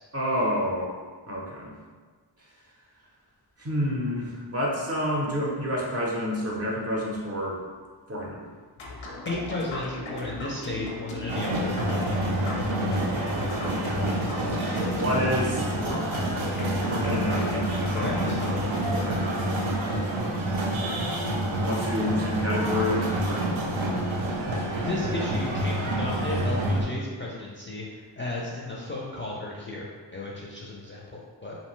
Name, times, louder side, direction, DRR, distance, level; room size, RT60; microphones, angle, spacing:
voice 1, 0.1-0.9 1.3-1.7 3.6-7.6 8.1-8.4 13.8-14.0 14.9-15.7 16.9-17.6 18.8-19.3 21.4-23.8, equal, 35° right, -4 dB, 0.6 m, -28 dB
sound 1, 8.8-19.3, left 2 dB, 85° left, 0.5 m, -36 dB
voice 2, 8.9-11.7 17.9-18.4 24.8-31.6, left 2 dB, 30° left, -5 dB, 0.4 m, -34 dB
sound 2, 11.3-26.8, right 1 dB, 85° right, 0.6 m, -28 dB
2.7 x 2.1 x 3.0 m, 1.5 s
wide cardioid pair, 70°, 46 cm